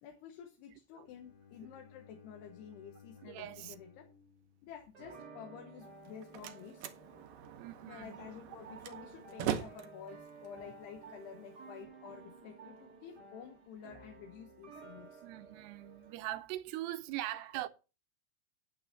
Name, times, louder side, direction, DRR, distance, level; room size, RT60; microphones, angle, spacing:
voice 1, 0.0-4.1 4.6-6.9 7.8-15.2, left 8 dB, 80° left, 3.3 m, -51 dB
Bowed string instrument, 1.0-5.1, left 6 dB, 55° left, 1.7 m, -59 dB
voice 2, 3.2-3.8 7.6-8.2 15.2-17.7, right 15 dB, 85° right, 2.8 m, -41 dB
sound 1, 4.9-16.2, right 4 dB, 40° right, 1.6 m, -54 dB
Slam, 5.9-11.8, right 9 dB, 70° right, 2.2 m, -42 dB
8.9 x 8.9 x 5.8 m
omnidirectional pair, 4.7 m